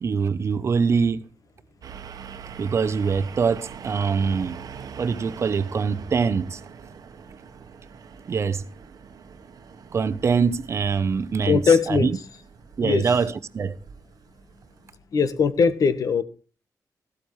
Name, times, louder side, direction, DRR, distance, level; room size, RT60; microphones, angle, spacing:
voice 1, 0.0-1.3 2.6-4.6 5.0-6.6 8.3-8.6 9.9-12.2 12.8-13.8, right 5 dB, 45° right, 0.7 m, -24 dB
sound 1, 1.8-15.0, right 6 dB, 65° right, 1.1 m, -43 dB
voice 2, 11.5-12.1 12.8-13.0 15.1-16.2, left 5 dB, 60° left, 1.3 m, -20 dB
15.5 x 13.0 x 3.2 m
wide cardioid pair, 175°, 7 cm